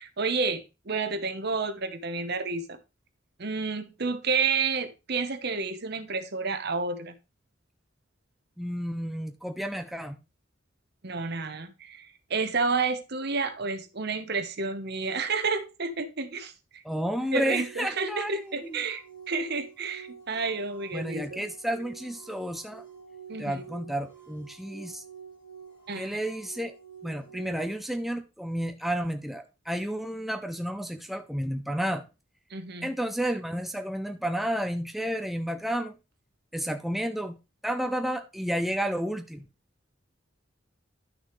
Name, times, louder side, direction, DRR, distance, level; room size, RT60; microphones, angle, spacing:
voice 1, 0.0-2.6 3.4-7.1 11.0-16.5 17.3-21.4 23.3-23.6 25.9-26.2 32.5-32.9, right 4 dB, 55° right, 1.0 m, -30 dB
voice 2, 8.6-10.2 16.8-18.8 20.9-22.8 23.4-25.0 26.0-26.7 27.0-32.0 32.8-36.0 36.5-37.4 37.6-39.4, equal, ahead, 0.5 m, -31 dB
sound 1, 17.3-27.8, right 7 dB, 25° left, 3.6 m, -48 dB
11.0 x 6.3 x 3.2 m
head